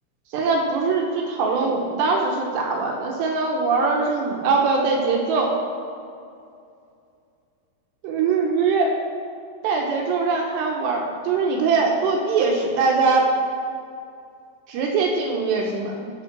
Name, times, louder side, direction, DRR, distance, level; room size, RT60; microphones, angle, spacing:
voice 1, 0.3-5.6 8.0-8.9 9.6-13.3 14.7-16.0, right 4 dB, 85° right, 0 dB, 2.4 m, -22 dB
13.0 x 4.4 x 6.0 m, 2.4 s
omnidirectional pair, 6.0 m